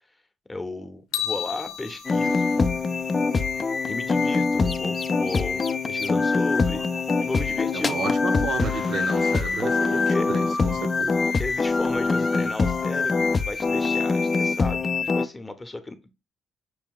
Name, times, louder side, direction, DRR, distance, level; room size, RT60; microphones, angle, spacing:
voice 1, 0.5-2.5 3.8-6.8 7.2-8.0 9.9-10.3 11.4-16.1, left 2 dB, 15° left, 0.8 m, -34 dB
sound 1, 1.1-3.4, left 11 dB, 90° left, 0.6 m, -33 dB
sound 2, 1.1-14.6, right 4 dB, 85° right, 1.4 m, -51 dB
sound 3, 2.0-15.3, left 4 dB, 35° left, 0.4 m, -24 dB
voice 2, 7.7-11.2, right 4 dB, 65° right, 0.8 m, -32 dB
6.1 x 2.2 x 3.7 m
cardioid pair, 90°, 0 cm